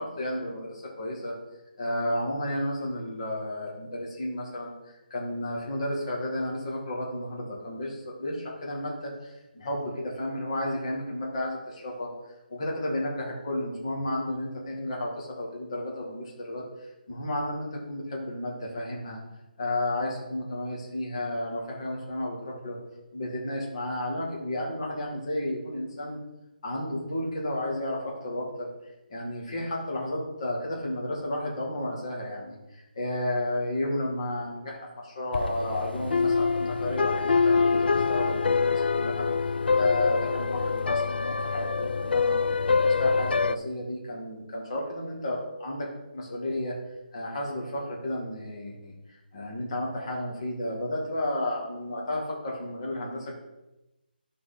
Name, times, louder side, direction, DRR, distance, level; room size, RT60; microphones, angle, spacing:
voice 1, 0.0-1.3 1.8-4.7 5.1-12.1 12.5-19.2 19.6-22.8 23.1-26.2 26.6-28.7 29.1-39.3 39.8-42.4 42.8-45.9 46.1-46.8 47.1-53.3, left 1 dB, 30° left, -3 dB, 2.2 m, -32 dB
sound 1, 35.3-43.5, left 4 dB, 70° left, 0.4 m, -25 dB
11.0 x 4.1 x 4.4 m, 0.96 s
hypercardioid pair, 175°, 5 cm